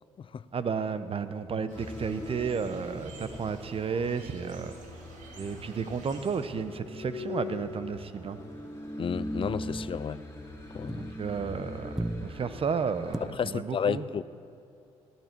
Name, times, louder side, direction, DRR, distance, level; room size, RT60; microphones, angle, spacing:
voice 1, 0.5-4.7 5.4-8.4 11.0-11.9 12.2-14.0, right 6 dB, 40° right, 0.9 m, -32 dB
sound 1, 1.7-13.3, left 2 dB, 20° left, 3.1 m, -41 dB
sound 2, 1.7-7.0, right 2 dB, 65° right, 2.6 m, -49 dB
sound 3, 7.0-7.4 7.7-11.5 11.8-13.2, right 1 dB, 5° right, 0.7 m, -42 dB
voice 2, 9.0-10.2 10.7-11.1 13.2-14.2, left 7 dB, 40° left, 0.5 m, -32 dB
19.0 x 12.5 x 4.6 m
supercardioid pair, 60°, 14 cm